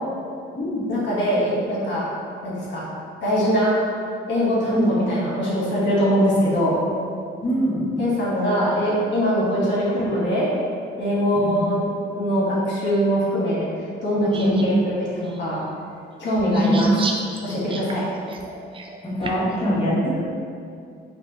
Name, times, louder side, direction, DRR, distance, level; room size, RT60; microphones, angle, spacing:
voice 1, 0.9-2.0 2.4-2.9 3.2-3.8 4.3-6.7 8.0-10.5 11.0-13.6 14.0-15.6 16.2-16.9 17.4-18.0, equal, 65° left, -7 dB, 1.1 m, -22 dB
voice 2, 7.4-7.9 11.3-11.6 14.3-14.6 16.5-16.8 19.0-20.2, equal, 30° left, -8 dB, 1.1 m, -23 dB
sound 1, 14.3-14.6 15.2-15.4 16.4-19.5, right 3 dB, 25° right, 0.3 m, -33 dB
4.2 x 2.8 x 2.7 m, 2.4 s
cardioid pair, 90°, 20 cm